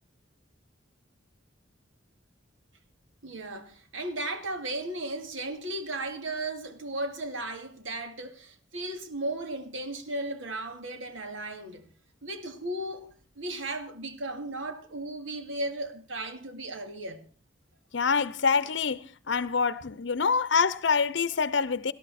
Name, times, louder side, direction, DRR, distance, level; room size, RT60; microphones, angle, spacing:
voice 1, 3.2-11.8 12.2-17.2, right 2 dB, 85° right, 2.4 m, -35 dB
voice 2, 17.9-19.0 19.3-21.9, left 5 dB, 65° left, 0.7 m, -25 dB
19.0 x 12.5 x 4.2 m
head